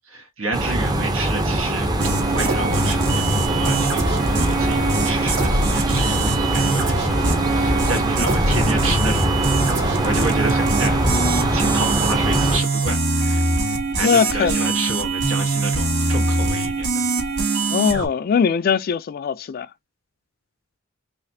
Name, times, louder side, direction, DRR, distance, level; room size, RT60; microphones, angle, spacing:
voice 1, 0.1-1.9 2.3-11.0 11.5-13.4 14.0-17.0, right 2 dB, 85° right, 1.4 m, -30 dB
sound 1, 0.5-12.6, right 1 dB, 20° right, 0.6 m, -22 dB
sound 2, 2.0-18.1, right 3 dB, 60° right, 1.2 m, -23 dB
voice 2, 14.0-14.8 17.7-19.7, left 6 dB, 45° left, 0.3 m, -21 dB
4.0 x 2.9 x 2.6 m
head